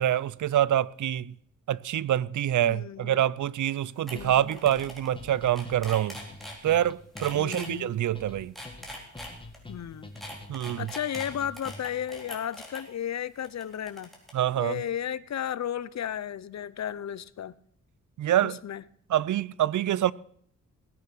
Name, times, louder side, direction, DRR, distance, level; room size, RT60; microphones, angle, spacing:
voice 1, 0.0-1.3 1.7-6.2 6.6-8.5 10.5-10.9 14.3-14.8 18.2-18.6 19.1-20.1, right 11 dB, 70° right, 0.5 m, -26 dB
voice 2, 2.6-3.2 4.1-4.6 7.3-8.0 9.7-10.1 10.8-14.1 14.6-17.5 18.4-18.8, left 9 dB, 60° left, 0.6 m, -34 dB
sound 1, 3.7-3.8 4.1-4.2 4.5-5.1 5.4-6.6 7.2-7.7 8.4-9.6 10.2-12.8 13.4-14.3, equal, ahead, 3.9 m, -42 dB
sound 2, 4.2-12.1, left 2 dB, 15° left, 1.9 m, -46 dB
18.5 x 8.7 x 5.9 m
wide cardioid pair, 100°, 32 cm